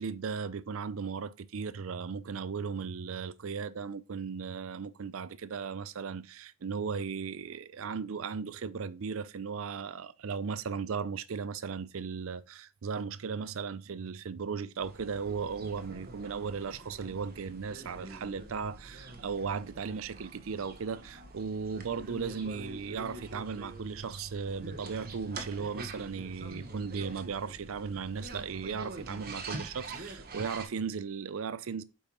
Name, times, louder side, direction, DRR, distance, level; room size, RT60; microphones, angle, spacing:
voice 1, 0.0-31.8, right 5 dB, 70° right, 0.5 m, -36 dB
sound 1, 14.8-30.7, right 2 dB, 45° right, 1.1 m, -45 dB
8.5 x 5.4 x 3.0 m
head